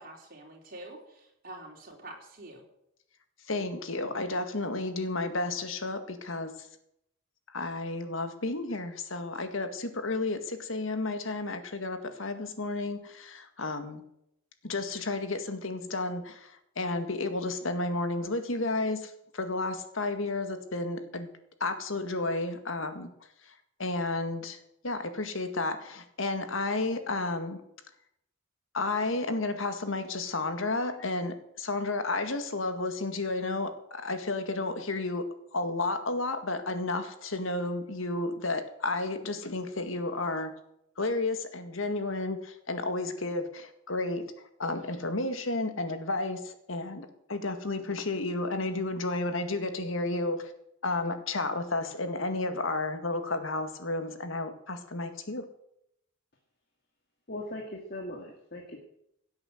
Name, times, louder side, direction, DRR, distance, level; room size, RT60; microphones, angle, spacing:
voice 1, 0.0-2.6, right 1 dB, 45° right, 0 dB, 4.2 m, -46 dB
voice 2, 3.5-6.7 7.5-14.0 14.6-21.3 21.6-23.1 23.4-24.6 24.8-27.6 28.7-40.5 41.0-44.2 44.6-50.5 50.8-55.5, left 2 dB, 80° left, 8 dB, 1.9 m, -32 dB
voice 3, 57.3-58.8, left 1 dB, 50° left, 1 dB, 2.1 m, -39 dB
17.0 x 8.7 x 7.8 m, 0.77 s
head